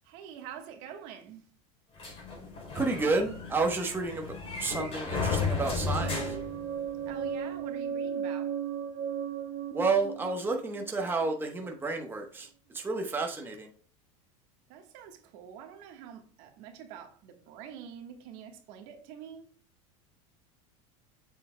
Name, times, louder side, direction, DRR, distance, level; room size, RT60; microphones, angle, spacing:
voice 1, 0.0-1.5 7.1-8.6 14.7-19.5, right 8 dB, 65° right, 1.4 m, -46 dB
sound 1, 2.0-7.3, left 4 dB, 35° left, 3.6 m, -34 dB
voice 2, 2.7-4.3 4.6-6.4 9.7-12.5 12.7-13.7, right 3 dB, 15° right, 1.0 m, -30 dB
sound 2, 6.0-11.8, right 8 dB, 45° right, 1.2 m, -36 dB
7.3 x 6.8 x 2.2 m
supercardioid pair, 115°, 17 cm